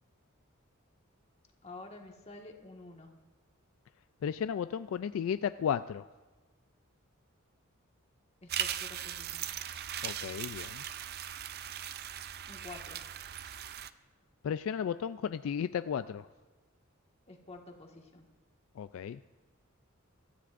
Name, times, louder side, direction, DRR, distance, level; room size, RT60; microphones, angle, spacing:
voice 1, 1.6-3.1 8.4-9.5 12.5-13.0 17.3-18.2, left 2 dB, 30° left, 2 dB, 1.6 m, -49 dB
voice 2, 4.2-6.1 10.0-10.8 14.4-16.3 18.8-19.2, left 8 dB, 70° left, 12 dB, 0.3 m, -34 dB
sound 1, 8.5-13.9, right 10 dB, 50° right, 0.5 m, -39 dB
25.0 x 13.5 x 2.5 m, 1.3 s
head